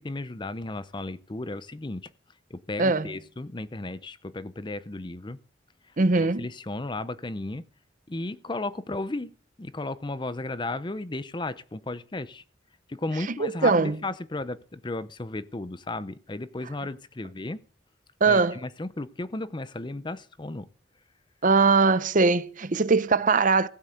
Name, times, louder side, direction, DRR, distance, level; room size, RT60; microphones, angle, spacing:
voice 1, 0.0-2.1 2.5-5.4 6.1-7.6 8.1-9.3 9.6-12.4 12.9-17.6 18.3-20.7, left 2 dB, 25° left, 0.6 m, -34 dB
voice 2, 6.0-6.4 13.4-14.0 18.2-18.6 21.4-23.7, right 4 dB, 45° right, 0.7 m, -21 dB
15.5 x 8.0 x 7.9 m
head